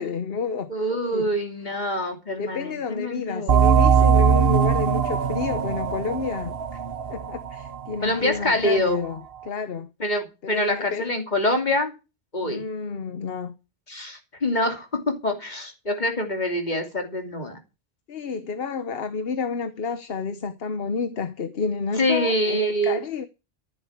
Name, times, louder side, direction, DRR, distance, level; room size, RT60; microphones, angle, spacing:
voice 1, 0.0-0.7 1.1-1.3 2.4-6.8 7.1-9.9 10.4-11.1 12.4-13.5 18.1-23.3, left 5 dB, 65° left, 1.2 m, -30 dB
voice 2, 0.7-3.6 8.0-9.0 10.0-11.9 12.3-12.6 13.9-17.6 22.0-23.0, left 1 dB, 45° left, 3.0 m, -25 dB
sound 1, 3.5-8.8, right 7 dB, 65° right, 1.2 m, -21 dB
14.0 x 7.9 x 7.3 m
omnidirectional pair, 1.1 m